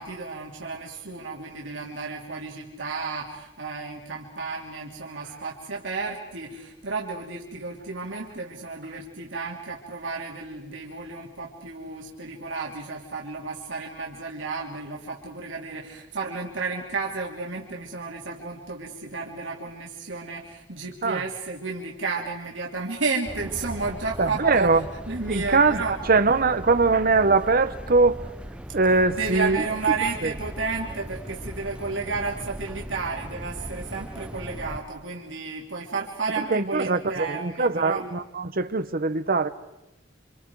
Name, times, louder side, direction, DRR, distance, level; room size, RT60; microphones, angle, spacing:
voice 1, 0.0-24.8 25.1-26.0 29.2-38.1, right 4 dB, 80° right, 3.1 m, -32 dB
sound 1, 23.3-34.8, equal, 5° right, 0.7 m, -38 dB
voice 2, 24.2-24.8 25.3-28.2 28.7-29.6 36.5-39.5, right 3 dB, 50° right, 1.1 m, -22 dB
29.0 x 27.0 x 4.9 m
head